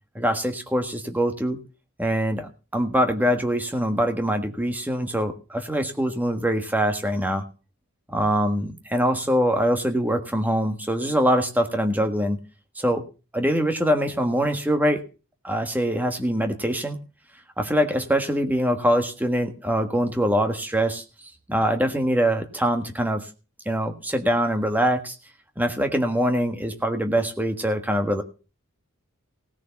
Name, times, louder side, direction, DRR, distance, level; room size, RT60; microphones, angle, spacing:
voice 1, 0.1-1.6 2.0-7.4 8.1-12.4 12.8-13.0 13.3-15.0 15.4-17.0 17.6-21.0 21.5-23.3 23.6-25.1 25.6-28.2, equal, 10° right, 6 dB, 1.5 m, -23 dB
17.0 x 6.4 x 7.1 m, 0.35 s
head